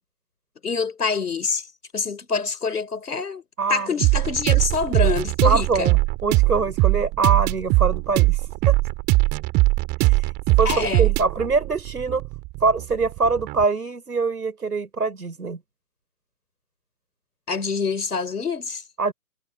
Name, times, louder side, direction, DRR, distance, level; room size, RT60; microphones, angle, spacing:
voice 1, 0.6-1.7 1.9-3.4 3.7-5.9 10.6-11.1 17.5-18.8, left 5 dB, 80° left, 4.1 m, -26 dB
voice 2, 3.6-3.9 5.4-8.7 10.0-12.3 12.6-15.6 19.0-19.1, right 4 dB, 80° right, 5.1 m, -24 dB
sound 1, 4.0-13.6, right 23 dB, 20° right, 2.7 m, -21 dB
figure-of-eight pair, 135°, 45 cm